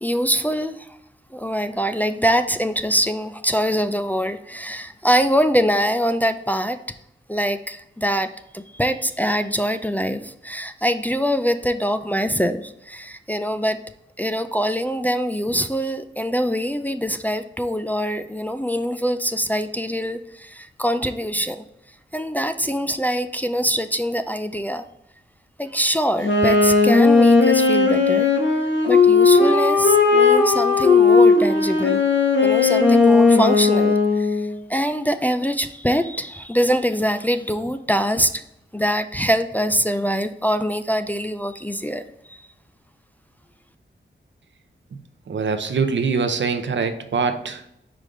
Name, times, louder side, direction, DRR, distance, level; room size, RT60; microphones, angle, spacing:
voice 1, 0.0-0.9 1.3-6.8 7.3-13.8 14.2-21.6 22.1-24.8 25.6-28.3 28.9-32.0 32.4-34.4 34.7-38.4 38.7-42.0 42.3-42.4, equal, 10° left, 7 dB, 0.3 m, -23 dB
Wind instrument woodwind instrument, 26.2-34.5, left 4 dB, 85° left, 1.0 m, -16 dB
voice 2, 45.3-47.7, right 5 dB, 75° right, 8 dB, 0.7 m, -23 dB
5.2 x 4.9 x 3.8 m, 0.79 s
wide cardioid pair, 105°, 19 cm